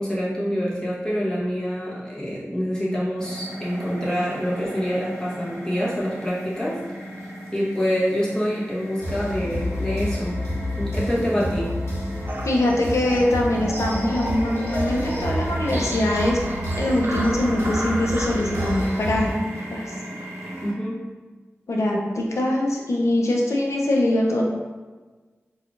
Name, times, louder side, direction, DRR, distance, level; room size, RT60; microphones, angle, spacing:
voice 1, 0.0-6.8 7.5-10.4 10.8-11.8 20.6-21.0, equal, 15° left, -7 dB, 1.0 m, -26 dB
sound 1, 3.2-20.7, right 1 dB, 80° right, 0.8 m, -36 dB
sound 2, 9.0-19.4, equal, 65° left, 1.0 m, -29 dB
sound 3, 12.3-18.9, right 1 dB, 45° right, 0.5 m, -34 dB
voice 2, 12.4-16.4 16.8-19.3 19.7-19.8 21.7-24.4, left 1 dB, 85° left, -2 dB, 0.6 m, -22 dB
4.3 x 2.4 x 2.5 m, 1.3 s
wide cardioid pair, 75°, 5 cm